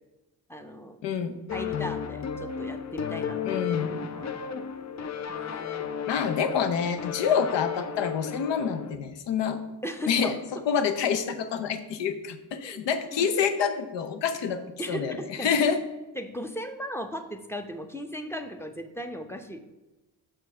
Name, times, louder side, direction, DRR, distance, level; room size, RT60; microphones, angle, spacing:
voice 1, 0.5-1.0 1.5-3.6 4.0-4.5 5.3-5.8 9.8-10.4 12.6-12.8 13.1-13.3 14.8-15.5 16.2-19.8, equal, 5° left, 7 dB, 0.7 m, -37 dB
voice 2, 1.0-1.3 3.4-3.9 6.1-9.6 10.1-10.4 10.7-14.6 14.9-15.8, left 7 dB, 80° left, 9 dB, 0.7 m, -27 dB
sound 1, 1.5-9.0, left 7 dB, 40° left, 0.5 m, -34 dB
6.1 x 3.8 x 5.5 m, 1.1 s
supercardioid pair, 55°, 42 cm